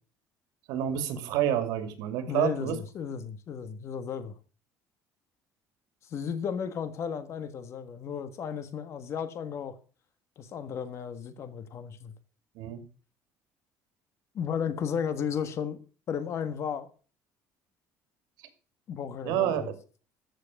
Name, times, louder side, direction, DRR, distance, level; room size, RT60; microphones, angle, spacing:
voice 1, 0.7-2.8 12.5-12.8 19.2-19.7, right 11 dB, 90° right, 2.4 m, -28 dB
voice 2, 2.3-4.4 6.1-9.8 10.4-12.1 14.3-16.9 18.9-19.7, left 7 dB, 45° left, 1.6 m, -34 dB
14.0 x 6.4 x 7.1 m
cardioid pair, 150°, 7 cm